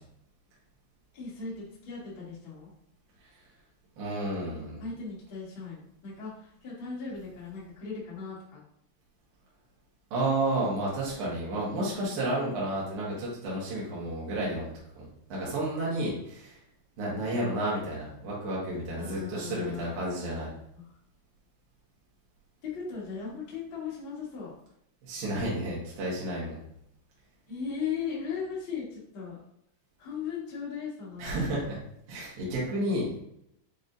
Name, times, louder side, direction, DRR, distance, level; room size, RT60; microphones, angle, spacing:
voice 1, 1.1-2.7 4.8-8.6 17.4-17.5 19.0-19.9 20.7-20.8 22.6-24.5 27.5-29.4 30.0-31.6, left 6 dB, 75° left, -7 dB, 1.1 m, -37 dB
voice 2, 4.0-4.8 10.1-14.7 15.0-15.1 15.3-16.6 17.0-20.5 25.0-26.6 31.2-31.8 32.1-33.2, right 1 dB, 65° right, -6 dB, 2.1 m, -31 dB
6.6 x 3.0 x 2.6 m, 0.75 s
omnidirectional pair, 5.3 m